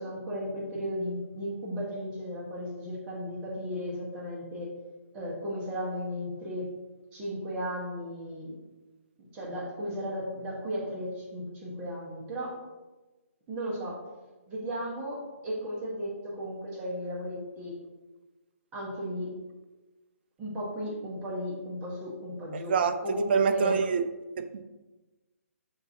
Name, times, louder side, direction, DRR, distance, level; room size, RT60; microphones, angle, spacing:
voice 1, 0.0-4.7 5.1-6.7 7.1-8.6 9.3-12.6 13.5-14.0 14.5-17.7 18.7-19.3 20.4-22.8 23.0-23.8, equal, 20° right, -6 dB, 1.2 m, -35 dB
voice 2, 23.3-24.0 24.4-24.6, right 6 dB, 45° right, 9 dB, 0.3 m, -25 dB
6.5 x 2.7 x 2.8 m, 1.2 s
figure-of-eight pair, 135°, 8 cm